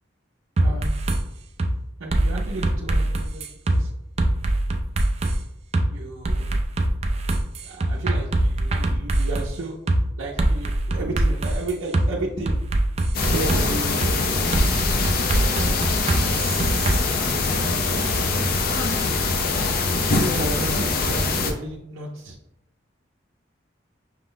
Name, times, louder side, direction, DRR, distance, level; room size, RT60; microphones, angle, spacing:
sound 1, 0.6-1.2 1.6-1.7 2.1-3.8 4.2-5.4 5.7-5.9 6.2-9.5 9.9-10.0 10.4-12.1 12.5-13.6 14.0-14.1 14.5-17.0, right 1 dB, 35° right, 0.4 m, -22 dB
voice 1, 0.6-0.9 2.0-3.9 5.9-6.5 7.6-9.8 10.2-12.7 13.2-14.6 17.1-19.1 20.1-22.4, right 2 dB, 85° right, -3 dB, 0.6 m, -33 dB
sound 2, 13.1-21.5, left 3 dB, 50° left, 0.5 m, -23 dB
5.8 x 2.0 x 3.8 m, 0.83 s
head